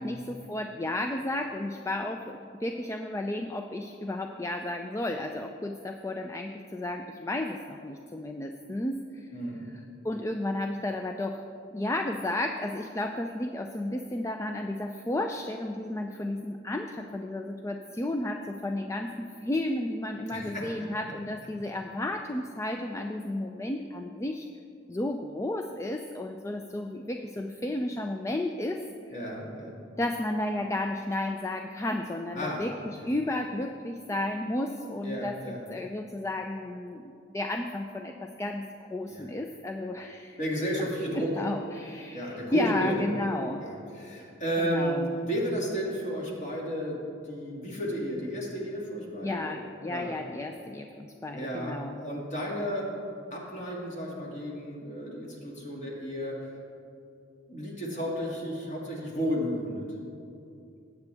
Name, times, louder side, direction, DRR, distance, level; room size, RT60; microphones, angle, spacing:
voice 1, 0.0-9.3 10.0-11.4 11.7-24.5 24.9-29.2 30.0-35.4 35.7-40.4 41.1-43.6 44.6-45.1 49.2-52.0, left 1 dB, 15° left, 5 dB, 0.3 m, -33 dB
voice 2, 20.3-20.7 29.1-29.8 32.3-32.6 33.0-33.1 35.0-35.6 39.1-39.2 40.4-41.3 42.1-43.2 43.6-49.6 49.9-50.1 51.3-52.9 53.3-56.5 57.5-59.9, equal, 35° left, -3 dB, 2.2 m, -33 dB
18.5 x 8.1 x 3.4 m, 2.6 s
head